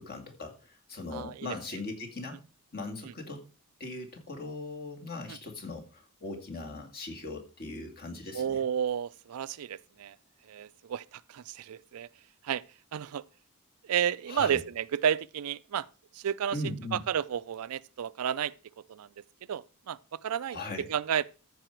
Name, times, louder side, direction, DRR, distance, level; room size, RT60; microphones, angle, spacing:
voice 1, 0.0-2.4 2.7-3.4 3.8-8.6 14.3-14.6 16.5-17.0 20.5-20.9, left 2 dB, 45° left, 2.1 m, -39 dB
voice 2, 1.1-1.6 5.3-5.4 8.3-10.2 10.5-12.1 12.4-12.6 12.9-13.2 13.8-15.9 16.1-16.6 16.9-21.2, right 8 dB, 85° right, 0.4 m, -32 dB
14.0 x 4.8 x 4.5 m
head